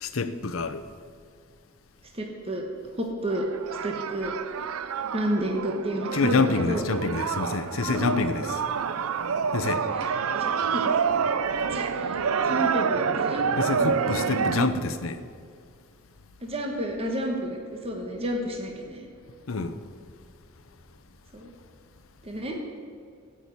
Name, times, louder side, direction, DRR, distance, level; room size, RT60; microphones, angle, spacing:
voice 1, 0.0-0.8 6.1-8.6 9.5-9.8 13.6-15.2 19.5-19.8, left 4 dB, 70° left, 0.7 m, -27 dB
voice 2, 2.1-2.6 3.0-3.5 3.8-4.3 5.1-6.9 7.9-8.1 9.9-10.9 11.7-13.4 16.4-19.1 21.3-21.5 22.2-22.6, equal, 30° right, 1.2 m, -31 dB
sound 1, 3.3-14.7, right 6 dB, 90° right, 0.5 m, -28 dB
13.0 x 6.0 x 8.2 m
head